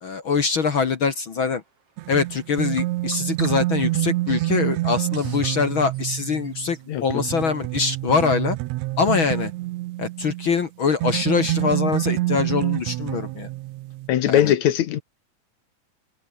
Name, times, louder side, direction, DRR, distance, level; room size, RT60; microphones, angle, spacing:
voice 1, 0.0-1.6 2.1-8.6 9.0-9.5 10.0-13.5 14.3-14.5, left 5 dB, 45° left, 2.1 m, -23 dB
Bird vocalization bird call bird song, 1.3-6.9, right 4 dB, 50° right, 5.7 m, -47 dB
sound 1, 2.0-10.6 11.0-14.1, right 18 dB, 75° right, 1.7 m, -27 dB
voice 2, 14.1-15.0, left 11 dB, 70° left, 2.4 m, -19 dB
omnidirectional pair, 3.6 m